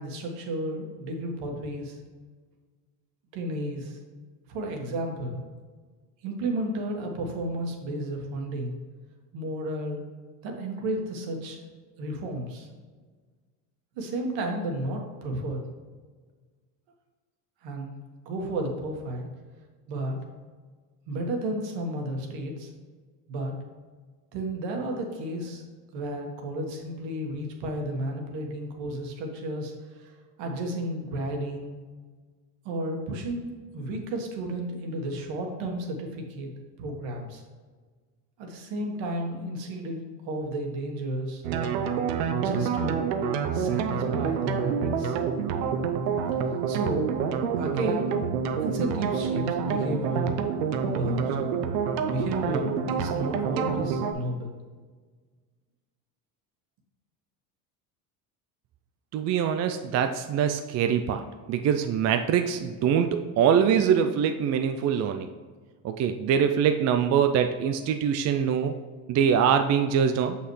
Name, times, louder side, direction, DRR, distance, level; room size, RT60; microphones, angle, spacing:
voice 1, 0.0-2.0 3.3-4.0 4.5-5.5 6.2-8.8 9.3-10.0 10.4-11.6 12.0-12.7 13.9-15.6 17.6-17.9 18.2-19.3 19.9-20.2 21.1-22.7 23.3-23.5 24.3-25.6 25.9-30.1 30.4-31.7 32.6-36.5 36.8-37.4 38.4-40.0 40.2-41.4 42.3-43.1 43.5-45.2 46.5-47.1 47.6-48.1 48.6-50.4 50.8-51.4 52.0-54.5, right 1 dB, 65° right, 2 dB, 1.6 m, -32 dB
sound 1, 41.4-54.1, right 6 dB, 90° right, 0.7 m, -27 dB
voice 2, 59.1-61.2 61.5-65.3 65.8-68.7 69.1-70.4, right 8 dB, 35° right, 7 dB, 0.4 m, -23 dB
6.3 x 5.7 x 3.2 m, 1.5 s
supercardioid pair, 95°, 48 cm